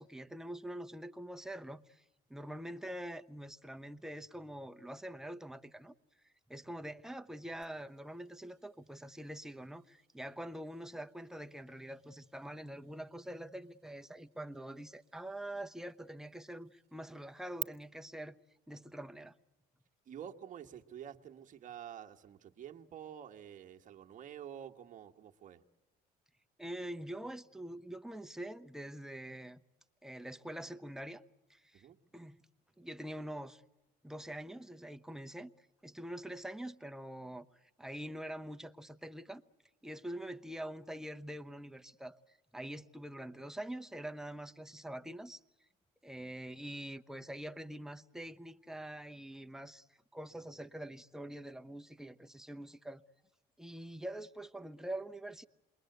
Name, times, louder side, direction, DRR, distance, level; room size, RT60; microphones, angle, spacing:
voice 1, 0.0-2.0 2.3-5.9 6.5-18.4 18.7-19.3 26.6-29.6 30.0-31.2 31.5-31.9 32.1-32.4 32.8-33.6 34.0-37.5 37.8-39.4 39.8-45.4 46.0-49.9 50.1-53.0 53.6-55.5, right 1 dB, 5° right, 0.8 m, -45 dB
sound 1, 7.6-17.6, right 15 dB, 75° right, 1.5 m, -54 dB
voice 2, 20.0-25.6 31.7-32.0, right 9 dB, 50° right, 1.6 m, -49 dB
28.0 x 22.0 x 8.0 m
cardioid pair, 110°, 17 cm